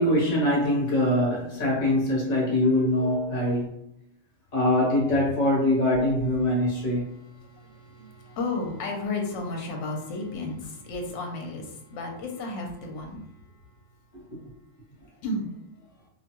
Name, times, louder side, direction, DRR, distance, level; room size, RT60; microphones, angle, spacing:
voice 1, 0.0-3.8 4.5-7.1 14.1-14.2, left 1 dB, 40° left, -3 dB, 0.9 m, -23 dB
voice 2, 7.0-13.4 15.2-15.5, left 2 dB, 70° left, 1 dB, 0.9 m, -33 dB
2.4 x 2.2 x 2.9 m, 0.76 s
omnidirectional pair, 1.3 m